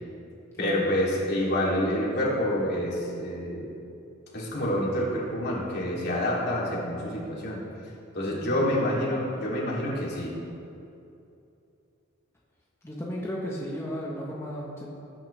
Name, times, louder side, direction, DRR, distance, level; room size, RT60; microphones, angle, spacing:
voice 1, 0.6-3.7 4.3-7.6 8.1-10.3, left 1 dB, 55° left, -5 dB, 3.1 m, -27 dB
voice 2, 8.3-9.1 12.8-14.9, equal, 15° left, -5 dB, 1.4 m, -35 dB
20.0 x 10.0 x 3.4 m, 2.7 s
head